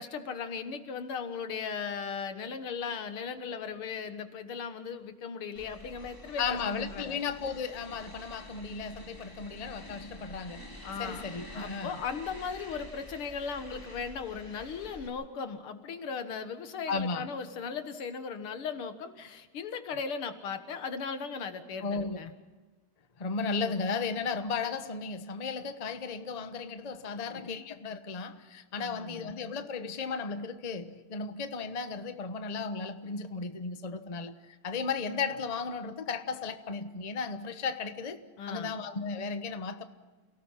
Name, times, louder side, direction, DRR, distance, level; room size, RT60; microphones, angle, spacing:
voice 1, 0.0-7.2 10.8-11.3 11.5-22.3 28.8-29.4 38.4-38.8, left 6 dB, 90° left, 2.4 m, -37 dB
sound 1, 5.6-15.1, left 1 dB, 10° left, 3.7 m, -48 dB
voice 2, 6.4-10.7 11.0-12.0 16.9-17.3 21.8-22.2 23.2-38.2 38.5-39.8, left 5 dB, 25° left, 0.8 m, -35 dB
29.5 x 18.0 x 5.8 m
omnidirectional pair, 2.3 m